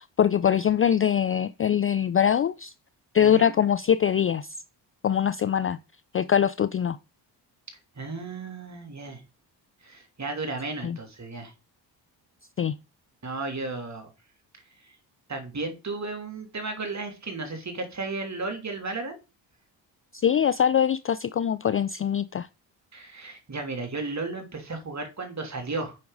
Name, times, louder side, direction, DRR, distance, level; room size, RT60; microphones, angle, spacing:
voice 1, 0.2-2.7 3.1-4.5 5.0-5.8 6.1-7.0 10.8-11.0 12.6-12.7 20.1-22.5, left 9 dB, 30° left, 0.4 m, -23 dB
voice 2, 3.2-3.5 8.0-9.2 9.8-11.5 13.2-14.1 15.3-19.2 22.9-26.0, right 3 dB, 35° right, 3.0 m, -34 dB
8.5 x 5.8 x 4.0 m
supercardioid pair, 55°, 48 cm